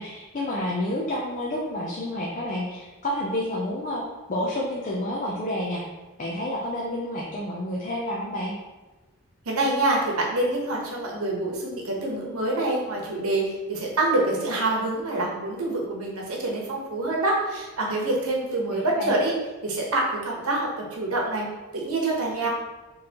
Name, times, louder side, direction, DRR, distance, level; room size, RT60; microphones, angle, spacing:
voice 1, 0.0-4.0 4.3-5.8 6.2-8.6 18.5-19.2, left 1 dB, 35° left, -3 dB, 0.5 m, -29 dB
voice 2, 9.4-19.3 19.6-21.5 21.7-22.5, right 2 dB, 90° right, -1 dB, 1.0 m, -26 dB
4.1 x 3.1 x 2.8 m, 1.2 s
head